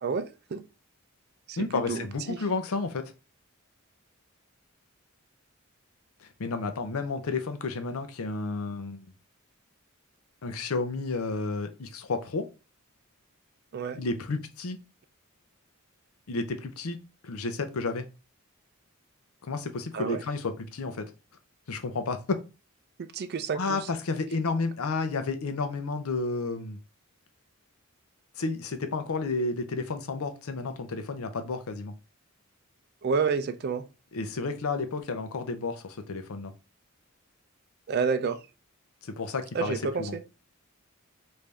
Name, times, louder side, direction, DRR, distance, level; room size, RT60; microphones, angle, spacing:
voice 1, 0.0-0.6 1.5-2.4 13.7-14.0 19.9-20.2 23.1-23.8 33.0-33.8 37.9-38.4 39.5-40.2, right 5 dB, 50° right, 0.4 m, -29 dB
voice 2, 1.6-3.1 6.2-9.1 10.4-12.5 14.0-14.8 16.3-17.0 17.2-18.0 19.5-21.1 21.7-22.4 23.5-26.8 28.4-31.9 34.1-36.5 39.0-40.2, left 3 dB, 75° left, 0.6 m, -31 dB
3.3 x 2.6 x 3.3 m
head